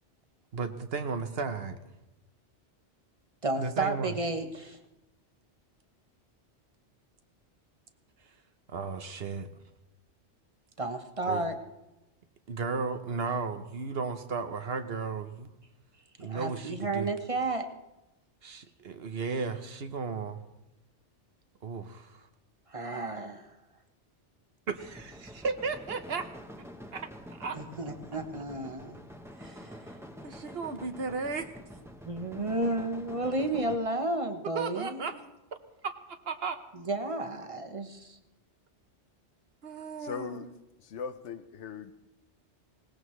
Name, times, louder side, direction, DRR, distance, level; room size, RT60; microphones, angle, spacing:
voice 1, 0.5-1.8 3.6-4.1 8.7-9.5 11.3-11.4 12.5-15.5 16.2-17.1 18.4-20.4 21.6-22.3 24.7-26.3 26.9-27.6 30.2-31.5 34.5-35.1 35.8-36.6 39.6-40.5, right 4 dB, 60° right, 1.1 m, -35 dB
voice 2, 3.4-4.8 10.8-11.6 16.2-17.7 22.7-23.5 27.5-29.0 29.4-30.0 32.0-35.1 36.7-38.2, right 2 dB, 30° right, 1.0 m, -32 dB
sound 1, 24.7-33.8, equal, 5° right, 0.9 m, -47 dB
voice 3, 40.0-40.5 40.8-41.9, left 6 dB, 80° left, 1.0 m, -39 dB
20.5 x 18.0 x 3.2 m
omnidirectional pair, 1.2 m